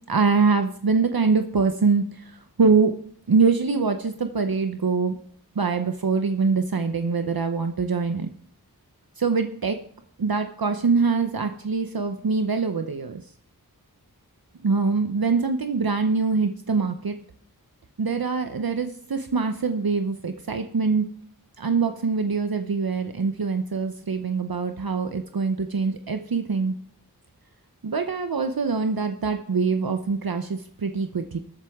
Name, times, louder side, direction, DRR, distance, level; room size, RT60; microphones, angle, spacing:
voice 1, 0.1-2.3 2.6-2.9 3.3-5.2 5.6-8.3 9.2-9.8 10.2-13.2 14.6-17.2 18.0-21.1 21.6-26.7 27.8-31.4, right 4 dB, 65° right, 7 dB, 0.8 m, -24 dB
20.0 x 7.7 x 3.6 m, 0.62 s
wide cardioid pair, 45°, 38 cm